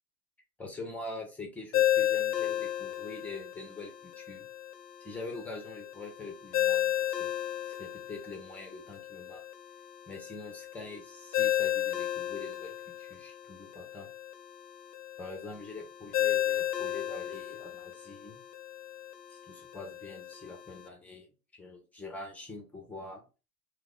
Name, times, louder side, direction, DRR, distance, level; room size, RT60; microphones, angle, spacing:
voice 1, 0.6-4.4 5.0-7.3 7.6-9.4 10.1-14.1 15.2-18.4 19.3-23.2, left 3 dB, 5° left, 2 dB, 0.3 m, -44 dB
Ringtone, 1.7-20.9, left 12 dB, 85° left, 0.6 m, -34 dB
2.9 x 2.4 x 4.0 m, 0.32 s
hypercardioid pair, 105°, 47 cm